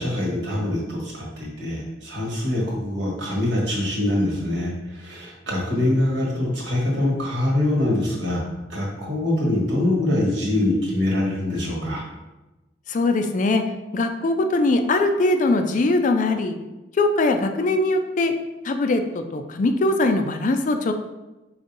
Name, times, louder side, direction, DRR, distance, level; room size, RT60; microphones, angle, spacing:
voice 1, 0.0-8.4 8.7-12.0, left 1 dB, 85° right, -3 dB, 1.4 m, -24 dB
voice 2, 12.9-13.6 13.9-16.6 17.0-18.3 18.6-20.9, left 2 dB, 45° left, 6 dB, 0.4 m, -21 dB
5.0 x 2.6 x 3.9 m, 1.1 s
head